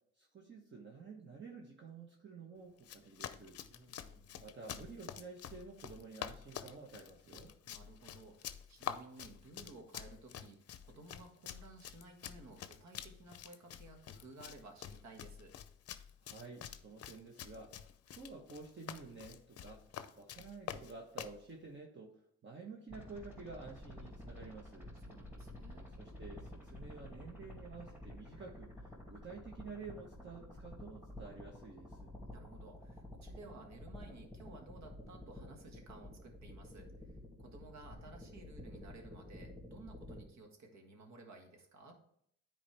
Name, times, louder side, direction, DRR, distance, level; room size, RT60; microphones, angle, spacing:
voice 1, 0.2-3.6 4.4-7.5 16.2-17.8 18.1-19.8 20.2-24.9 26.0-32.2, right 4 dB, 40° right, 0 dB, 1.2 m, -51 dB
Run, 2.8-21.4, left 9 dB, 55° left, 0.6 m, -48 dB
voice 2, 3.7-4.5 7.7-15.6 24.9-25.9 32.3-42.0, right 2 dB, 65° right, 3 dB, 1.7 m, -56 dB
sound 1, 22.9-40.2, left 1 dB, 5° right, 2.4 m, -51 dB
9.7 x 4.4 x 3.4 m, 0.69 s
cardioid pair, 90°, 30 cm